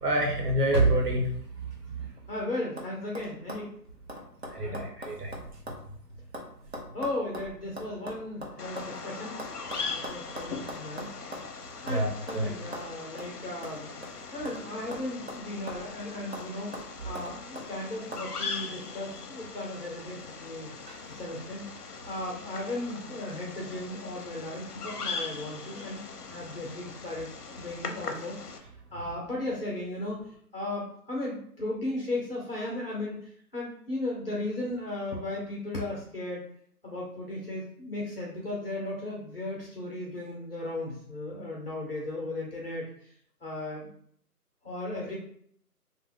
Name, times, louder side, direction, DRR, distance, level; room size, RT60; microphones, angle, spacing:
voice 1, 0.0-1.3 4.5-5.3 11.9-12.1 12.3-12.5, right 1 dB, 75° right, 1 dB, 1.1 m, -26 dB
voice 2, 2.0-3.7 4.6-4.8 6.9-9.4 9.9-11.2 11.8-13.9 14.3-16.8 17.0-20.8 21.1-21.7 22.1-30.2 30.5-36.4 36.8-43.1 43.4-43.9 44.6-45.1, left 2 dB, 40° left, -4 dB, 0.8 m, -36 dB
sound 1, 2.0-2.4 2.8-2.9 3.1-5.9 6.1-8.9 9.4-11.5 11.9-12.0 12.3-12.4 12.7-12.9 13.2-13.3 13.6-14.6 14.9-16.0 16.3-16.5 16.7-17.7 18.1-18.3, equal, 45° right, 0.5 m, -41 dB
Bird vocalization bird call bird song, 8.6-28.6, left 4 dB, 70° left, 0.7 m, -40 dB
2.7 x 2.2 x 3.6 m, 0.64 s
hypercardioid pair, 170°, 47 cm